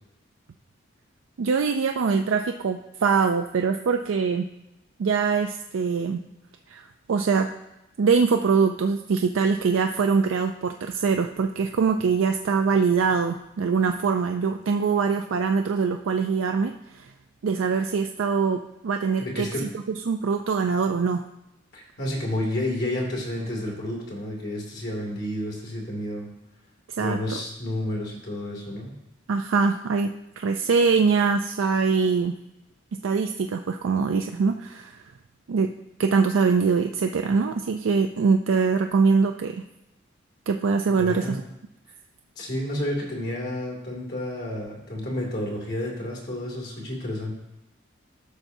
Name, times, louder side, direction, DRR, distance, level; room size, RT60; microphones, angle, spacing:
voice 1, 1.4-4.5 5.0-6.2 6.7-7.5 8.0-17.1 17.4-19.5 20.1-21.2 27.0-27.4 29.3-32.3 33.0-35.0 35.5-35.7 36.0-39.6 40.5-41.4, right 5 dB, 85° right, 5 dB, 0.4 m, -23 dB
voice 2, 19.2-19.7 21.7-26.3 27.0-28.9 41.0-41.4 42.4-47.3, left 1 dB, 55° left, -1 dB, 2.4 m, -30 dB
13.0 x 5.9 x 2.7 m, 0.91 s
head